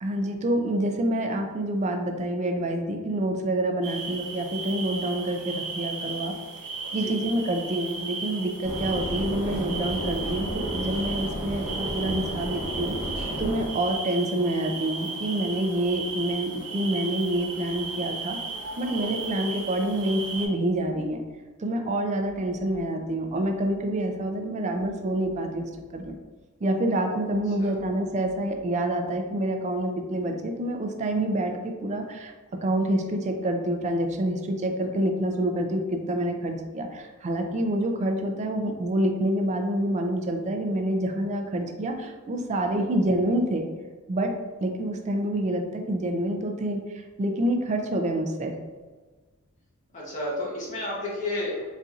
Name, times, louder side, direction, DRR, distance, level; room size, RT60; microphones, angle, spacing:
voice 1, 0.0-6.3 6.9-13.0 13.4-18.4 18.8-21.2 21.6-26.2 26.6-32.3 32.6-43.7 44.1-44.3 44.6-48.5, right 1 dB, 30° right, 4 dB, 0.3 m, -27 dB
sound 1, 3.8-20.5, right 4 dB, 80° right, 0.8 m, -35 dB
sound 2, 8.6-13.7, equal, 15° right, 1.1 m, -32 dB
voice 2, 18.8-19.1 27.6-27.7 42.7-42.8 49.9-51.6, left 1 dB, 35° left, -5 dB, 0.7 m, -32 dB
4.2 x 2.5 x 2.4 m, 1.3 s
head